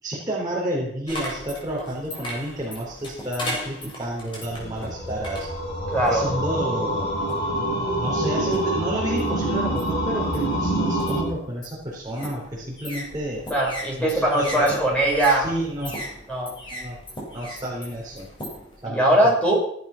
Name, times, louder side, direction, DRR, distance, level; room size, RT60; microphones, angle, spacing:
voice 1, 0.0-5.5 6.1-7.1 8.0-13.4 14.0-14.8 15.3-16.0 16.7-17.0 17.3-18.3 18.8-19.3, right 1 dB, 20° right, -5 dB, 4.0 m, -30 dB
sound 1, 1.1-6.4 7.0-7.6 8.2-8.8 9.2-18.8, equal, 30° left, 6.8 m, -37 dB
sound 2, 4.4-11.2, right 1 dB, 60° left, 7.7 m, -26 dB
voice 2, 5.9-6.2 13.5-15.5 16.3-16.5 18.9-19.5, right 1 dB, 5° left, -3 dB, 6.8 m, -20 dB
17.5 x 11.5 x 5.9 m, 0.70 s
head